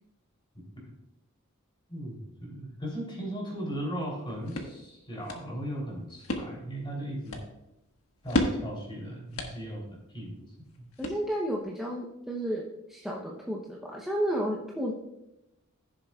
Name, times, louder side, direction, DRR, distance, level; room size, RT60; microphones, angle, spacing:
voice 1, 0.5-0.9 1.9-7.4 8.2-10.4, equal, 25° left, -2 dB, 3.2 m, -37 dB
sound 1, 4.0-11.6, left 1 dB, 85° left, 1.4 m, -36 dB
voice 2, 11.0-14.9, equal, ahead, -3 dB, 0.8 m, -32 dB
15.0 x 7.1 x 2.4 m, 0.91 s
head